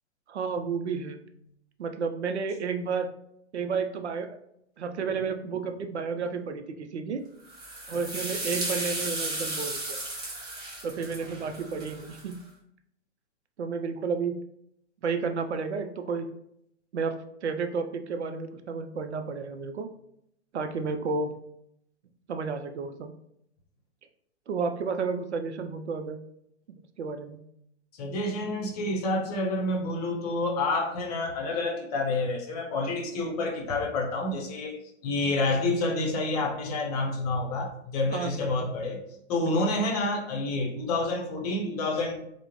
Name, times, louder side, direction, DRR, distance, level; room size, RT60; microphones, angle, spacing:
voice 1, 0.3-1.2 1.8-3.1 3.5-4.4 4.8-7.2 7.9-10.1 10.8-12.4 13.6-14.4 15.0-16.3 16.9-19.9 20.5-21.3 22.3-23.1 24.5-26.2 27.0-27.4 38.1-38.7 39.4-39.6, right 5 dB, 75° right, 6 dB, 0.5 m, -31 dB
sound 1, 7.5-12.3, right 2 dB, 10° right, 0.6 m, -34 dB
voice 2, 27.9-39.0 39.3-42.1, left 2 dB, 35° left, 0 dB, 0.7 m, -28 dB
3.4 x 2.1 x 2.9 m, 0.75 s
figure-of-eight pair, 115°, 34 cm